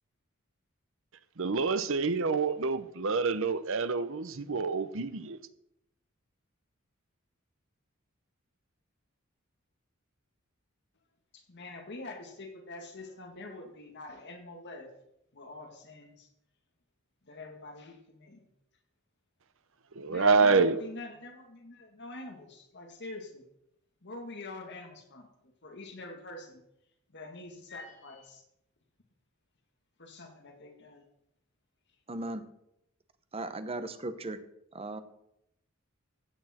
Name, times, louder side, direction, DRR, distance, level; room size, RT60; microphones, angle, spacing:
voice 1, 1.4-5.4 20.0-20.8, right 4 dB, 70° right, 13 dB, 0.8 m, -27 dB
voice 2, 11.3-14.9 15.3-16.3 17.3-18.5 20.0-23.4 24.0-26.6 27.1-28.4 30.0-31.0, left 2 dB, 55° left, 4 dB, 1.9 m, -45 dB
voice 3, 32.1-32.4 33.3-34.4 34.7-35.0, right 2 dB, 30° right, 11 dB, 0.9 m, -37 dB
15.0 x 8.5 x 4.4 m, 0.79 s
head